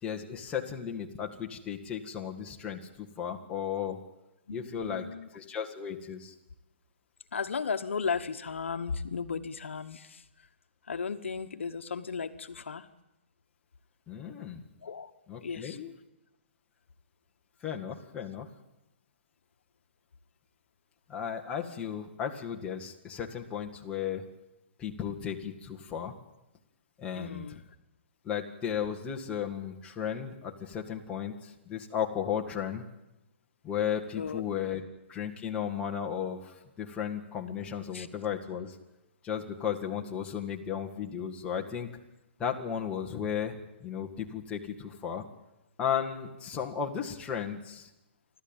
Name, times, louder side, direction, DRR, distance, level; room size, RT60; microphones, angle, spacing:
voice 1, 0.0-4.0 4.5-6.3 14.1-14.7 15.3-15.9 17.6-18.5 21.1-24.2 24.8-26.1 27.0-27.6 28.2-32.8 33.6-34.8 35.1-38.8 39.2-41.9 42.4-45.2 45.8-47.9, left 8 dB, 15° left, 1 dB, 2.0 m, -35 dB
voice 2, 4.5-5.3 7.3-10.2 10.9-12.9 14.8-15.1 15.4-15.8 27.2-27.6 34.1-34.4 37.9-38.1, left 5 dB, 80° left, 9 dB, 1.2 m, -35 dB
30.0 x 12.5 x 9.1 m, 0.93 s
hypercardioid pair, 145°, 7 cm